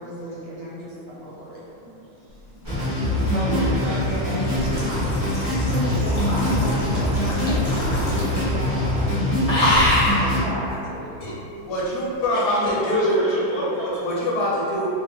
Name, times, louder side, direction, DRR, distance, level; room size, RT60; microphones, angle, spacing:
voice 1, 0.0-1.6 3.2-4.4 4.7-9.1 10.2-11.0, equal, 75° right, -7 dB, 1.4 m, -33 dB
voice 2, 2.0-2.6 3.3-4.1 11.0-11.2 11.5-11.6 12.4-14.2, right 1 dB, 55° right, -12 dB, 1.1 m, -34 dB
sound 1, 2.6-10.4, left 1 dB, 30° right, 0.4 m, -23 dB
sound 2, 2.9-8.6 8.8-9.1 9.4-10.3 11.2-11.3, left 1 dB, 55° left, 0.7 m, -25 dB
voice 3, 11.7-13.2 13.5-14.9, equal, 75° left, -6 dB, 1.4 m, -23 dB
3.4 x 2.1 x 2.8 m, 2.6 s
omnidirectional pair, 2.4 m